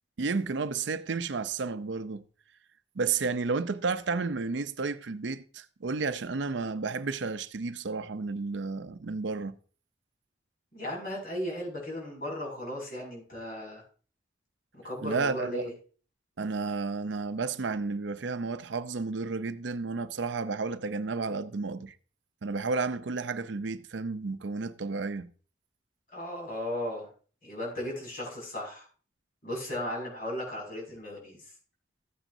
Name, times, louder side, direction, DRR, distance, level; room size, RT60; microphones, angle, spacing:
voice 1, 0.2-2.2 3.0-9.6 15.0-15.7 16.4-22.0 22.4-25.3, right 4 dB, 80° right, 0.6 m, -32 dB
voice 2, 10.7-13.8 14.7-15.7 26.1-27.1 27.4-28.9 29.4-31.4, left 1 dB, 50° left, 6.1 m, -36 dB
14.5 x 9.0 x 2.7 m
head